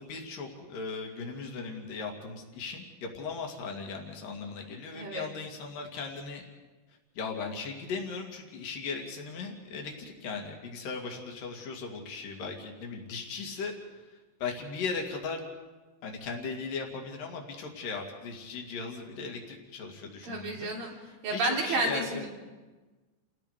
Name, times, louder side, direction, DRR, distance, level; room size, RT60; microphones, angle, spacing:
voice 1, 0.0-6.4 7.2-13.7 14.0-15.4 16.0-21.0 21.3-22.3, left 4 dB, 75° left, 2 dB, 4.0 m, -38 dB
voice 2, 4.9-5.3 20.2-20.9 21.2-22.3, right 2 dB, 90° right, -1 dB, 5.1 m, -31 dB
29.5 x 17.5 x 5.0 m, 1.3 s
omnidirectional pair, 3.9 m